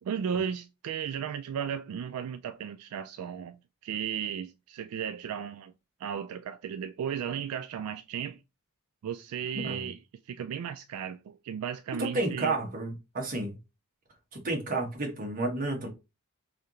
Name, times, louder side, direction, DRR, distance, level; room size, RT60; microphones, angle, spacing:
voice 1, 0.0-5.7 6.0-8.4 9.0-10.0 10.3-12.6, right 8 dB, 70° right, 0.3 m, -35 dB
voice 2, 12.1-13.6 14.3-15.9, right 2 dB, 40° right, 1.1 m, -31 dB
3.3 x 2.8 x 3.6 m
head